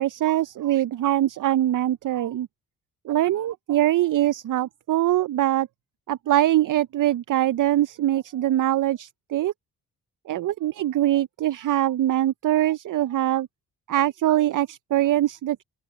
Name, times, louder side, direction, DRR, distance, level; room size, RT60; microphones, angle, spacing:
voice 1, 0.0-2.5 3.0-5.7 6.1-9.5 10.3-13.5 13.9-15.6, right 13 dB, 55° right, 0.6 m, -23 dB
open air
supercardioid pair, 60°, 39 cm